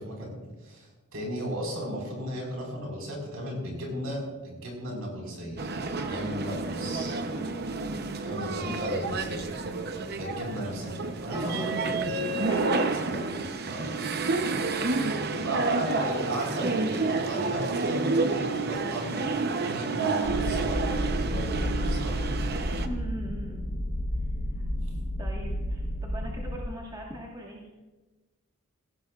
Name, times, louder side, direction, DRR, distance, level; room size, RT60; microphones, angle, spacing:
voice 1, 0.0-5.6 6.0-7.1 8.2-9.5 10.1-11.9 13.1-13.4 13.7-13.9 15.4-22.5, right 1 dB, 65° right, -1 dB, 4.7 m, -35 dB
sound 1, 5.6-22.9, right 3 dB, 45° right, 0.8 m, -30 dB
voice 2, 5.9-6.2 7.3-7.6 11.3-11.7 12.4-13.5 15.5-15.8 22.8-23.7 24.5-24.6 25.2-27.6, right 1 dB, 20° right, -3 dB, 1.6 m, -41 dB
sound 2, 20.2-26.6, equal, 45° left, 0.9 m, -31 dB
17.0 x 16.0 x 2.4 m, 1.2 s
head